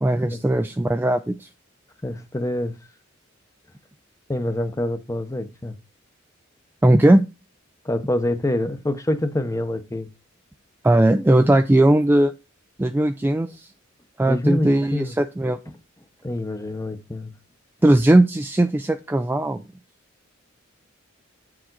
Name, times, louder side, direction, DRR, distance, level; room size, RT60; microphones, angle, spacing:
voice 1, 0.0-1.5 6.8-7.2 10.8-12.3 12.8-13.7 14.2-15.6 17.8-19.6, right 1 dB, 10° right, 0.3 m, -18 dB
voice 2, 2.0-2.8 4.3-5.8 7.8-10.1 14.2-15.2 16.2-17.3, left 1 dB, 15° left, 0.7 m, -26 dB
8.6 x 4.8 x 3.9 m
head